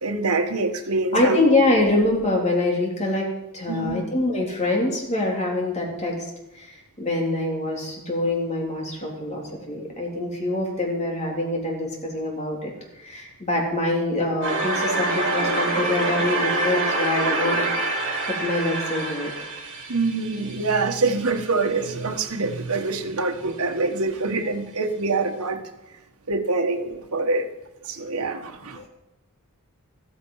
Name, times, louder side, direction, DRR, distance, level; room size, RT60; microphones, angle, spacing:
voice 1, 0.0-1.4 3.7-4.0 19.9-25.6 26.3-27.5 27.8-28.9, right 3 dB, 85° right, 5 dB, 1.4 m, -25 dB
voice 2, 1.1-6.2 6.5-12.7 13.0-17.6 18.3-19.3 28.8-28.9, left 2 dB, 30° left, -1 dB, 3.7 m, -24 dB
sound 1, 14.4-21.3, right 2 dB, 60° right, 5.5 m, -26 dB
14.0 x 14.0 x 5.7 m, 0.94 s
head